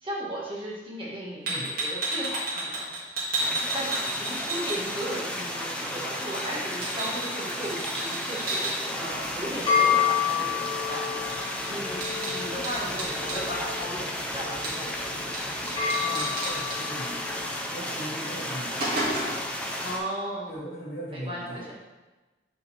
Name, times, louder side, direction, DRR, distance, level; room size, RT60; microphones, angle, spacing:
voice 1, 0.0-2.9 3.2-3.5 3.7-11.2 11.7-15.3 19.8-20.5 21.1-21.7, right 1 dB, 30° right, -5 dB, 1.7 m, -36 dB
voice 2, 1.4-1.8 16.0-17.4 17.7-19.2 20.5-21.7, right 1 dB, 60° left, -4 dB, 1.9 m, -39 dB
sound 1, 1.5-5.2 5.5-8.7 10.9-11.0 11.3-13.4 14.6-15.0 15.3-15.4 15.7-16.8 17.9-18.0 18.4-19.5, right 2 dB, 55° right, 2.2 m, -32 dB
sound 2, 3.4-20.0, left 1 dB, 5° left, 0.7 m, -33 dB
sound 3, 9.1-17.5, left 8 dB, 25° left, 1.7 m, -30 dB
6.7 x 5.6 x 3.5 m, 1.2 s
head